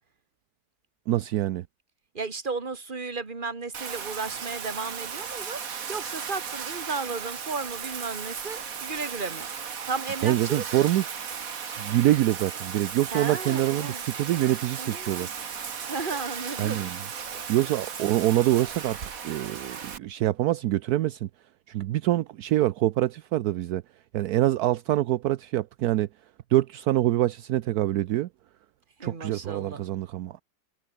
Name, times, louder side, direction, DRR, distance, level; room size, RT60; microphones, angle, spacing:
voice 1, 1.1-1.6 10.2-11.0 11.8-15.3 16.6-17.0 17.5-21.3 21.7-23.8 24.1-26.1 26.5-28.3 29.0-30.4, right 14 dB, 75° right, 1.1 m, -25 dB
voice 2, 2.1-9.5 9.9-10.9 13.1-14.0 14.7-15.3 15.9-16.8 29.0-29.9, right 4 dB, 30° right, 2.2 m, -34 dB
Bathtub (filling or washing), 3.7-20.0, right 7 dB, 55° right, 1.9 m, -36 dB
omnidirectional pair, 1.8 m